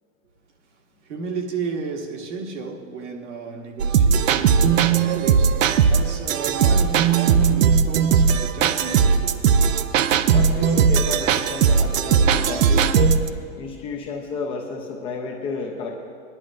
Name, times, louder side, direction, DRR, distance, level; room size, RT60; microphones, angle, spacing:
voice 1, 1.0-9.4, right 4 dB, 65° right, 1.5 m, -33 dB
sound 1, 3.8-13.3, right 6 dB, 85° right, 0.6 m, -18 dB
voice 2, 10.3-13.2 13.6-16.0, left 4 dB, 15° left, 0.4 m, -31 dB
18.0 x 11.0 x 2.5 m
hypercardioid pair, 145°, 38 cm